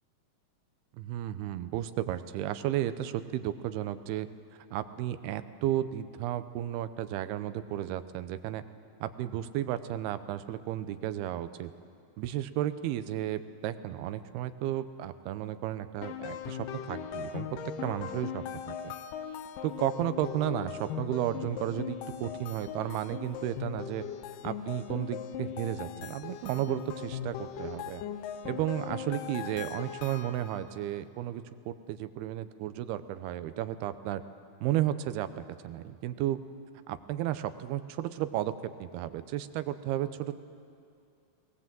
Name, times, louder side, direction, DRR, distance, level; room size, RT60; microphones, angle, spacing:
voice 1, 0.9-4.3 4.7-8.6 9.0-11.7 12.2-17.5 17.8-19.0 19.6-24.0 24.4-28.0 28.4-34.2 34.6-36.4 36.9-40.3, right 12 dB, 85° right, 12 dB, 2.7 m, -33 dB
sound 1, 16.0-30.7, left 9 dB, 75° left, 2.2 m, -39 dB
21.5 x 19.0 x 7.6 m, 2.5 s
omnidirectional pair, 4.5 m